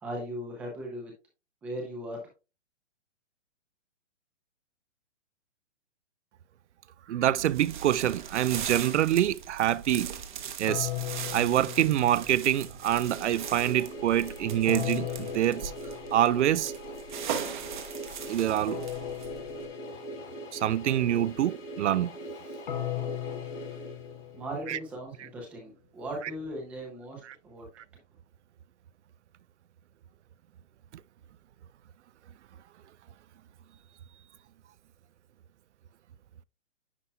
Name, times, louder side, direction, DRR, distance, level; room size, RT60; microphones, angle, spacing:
voice 1, 0.0-1.1 1.6-2.2 24.3-27.6, equal, 5° right, 0.6 m, -38 dB
voice 2, 7.1-10.1 10.6-10.9 11.3-15.7 16.1-16.7 17.3-17.5 18.3-18.8 20.5-22.1 24.7-24.8, right 12 dB, 65° right, 0.5 m, -26 dB
sound 1, 7.4-19.7, right 8 dB, 40° right, 1.0 m, -40 dB
sound 2, 10.7-12.7 14.7-16.5 18.7-20.5 22.7-24.9, left 12 dB, 40° left, 0.7 m, -37 dB
sound 3, 12.8-24.6, right 1 dB, 70° left, 3.2 m, -42 dB
9.8 x 5.6 x 2.3 m
hypercardioid pair, 165°, 37 cm